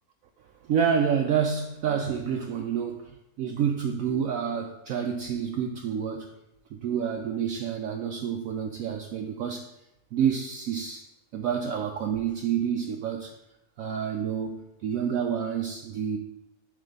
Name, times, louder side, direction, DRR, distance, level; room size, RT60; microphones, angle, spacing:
voice 1, 0.6-6.3 6.7-9.7 10.1-11.1 11.3-13.3 13.8-16.2, right 7 dB, 70° right, 4 dB, 0.8 m, -28 dB
7.3 x 3.3 x 5.2 m, 0.89 s
omnidirectional pair, 1.7 m